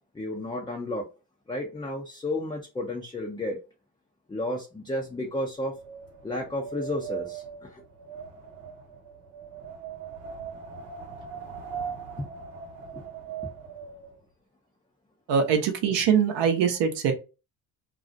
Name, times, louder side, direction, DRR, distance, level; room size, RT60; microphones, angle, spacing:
voice 1, 0.1-1.1 1.5-3.6 4.3-5.8 6.2-7.8 12.2-12.3 12.9-13.0, left 1 dB, 10° left, 0 dB, 0.4 m, -32 dB
Wind, 5.1-14.2, right 7 dB, 90° right, 1.0 m, -40 dB
voice 2, 15.3-17.1, right 7 dB, 60° right, 4 dB, 0.7 m, -23 dB
2.4 x 2.0 x 2.6 m, 0.29 s
supercardioid pair, 70°, 47 cm